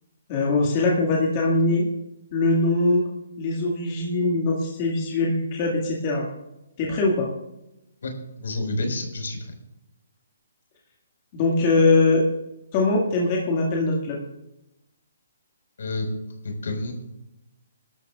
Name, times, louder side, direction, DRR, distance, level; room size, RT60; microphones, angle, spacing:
voice 1, 0.3-1.8 2.3-3.0 3.4-6.3 6.8-7.3 11.3-12.2 12.7-14.2, left 2 dB, 25° left, -3 dB, 2.0 m, -22 dB
voice 2, 8.4-9.5 15.8-16.1 16.4-16.9, left 2 dB, 70° left, 2 dB, 4.8 m, -29 dB
23.5 x 12.5 x 2.4 m, 0.91 s
hypercardioid pair, 170°, 0 cm